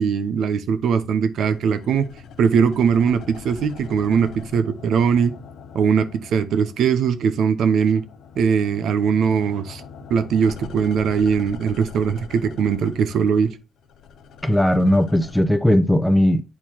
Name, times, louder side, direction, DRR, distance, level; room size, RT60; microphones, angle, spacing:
voice 1, 0.0-2.1 2.4-5.4 5.7-8.1 8.4-9.8 10.1-13.6, right 6 dB, 70° right, 0.8 m, -20 dB
sound 1, 1.4-7.3 7.6-15.4, left 6 dB, 75° left, 0.6 m, -41 dB
voice 2, 14.4-16.4, equal, ahead, 0.7 m, -17 dB
8.7 x 4.5 x 2.9 m
cardioid pair, 90°, 0 cm